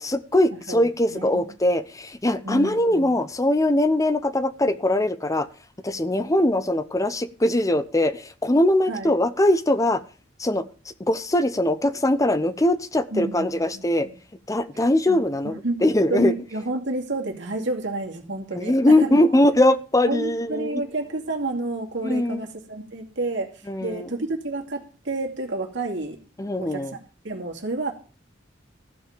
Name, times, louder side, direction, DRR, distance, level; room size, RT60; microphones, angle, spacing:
voice 1, 0.0-5.5 5.8-10.0 10.4-10.6 11.1-14.1 14.5-16.3 18.5-20.8 22.0-22.4 23.7-24.1 26.4-26.9, left 1 dB, 15° left, 12 dB, 0.8 m, -21 dB
voice 2, 0.7-1.5 2.4-3.2 8.9-9.2 13.1-14.1 15.1-15.8 16.1-19.4 20.1-26.2 26.6-27.0 27.2-27.9, right 2 dB, 65° right, 1 dB, 2.5 m, -30 dB
14.5 x 5.4 x 7.6 m, 0.38 s
head